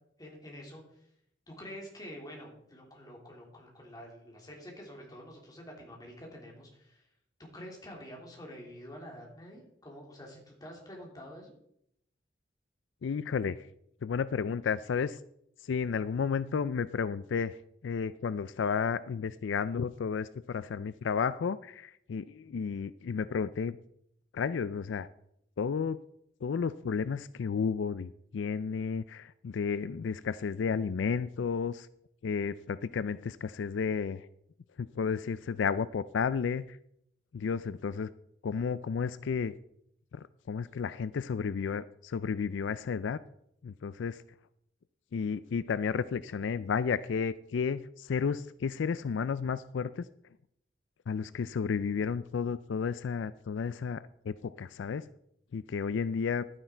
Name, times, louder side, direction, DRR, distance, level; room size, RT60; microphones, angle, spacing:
voice 1, 0.2-1.0 1.5-7.0 7.4-11.5, equal, 20° left, -1 dB, 3.1 m, -47 dB
voice 2, 13.0-13.7 14.0-15.2 15.6-23.8 24.3-25.1 25.6-26.0 26.4-31.9 32.2-34.3 34.8-36.8 37.3-38.1 38.4-39.5 40.1-43.2 43.6-44.2 45.1-50.1 51.1-55.1 55.5-56.4, left 6 dB, 80° left, 15 dB, 0.4 m, -32 dB
11.5 x 9.8 x 4.4 m, 0.73 s
head